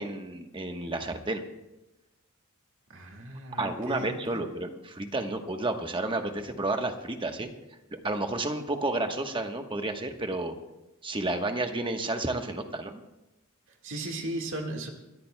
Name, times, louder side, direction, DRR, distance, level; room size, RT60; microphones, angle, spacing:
voice 1, 0.0-1.4 3.6-7.5 7.9-10.5 11.0-13.0, right 2 dB, 25° right, 5 dB, 1.1 m, -31 dB
voice 2, 2.9-4.4 13.8-14.9, right 1 dB, 60° right, 2 dB, 1.7 m, -36 dB
28.0 x 13.5 x 2.2 m, 0.97 s
head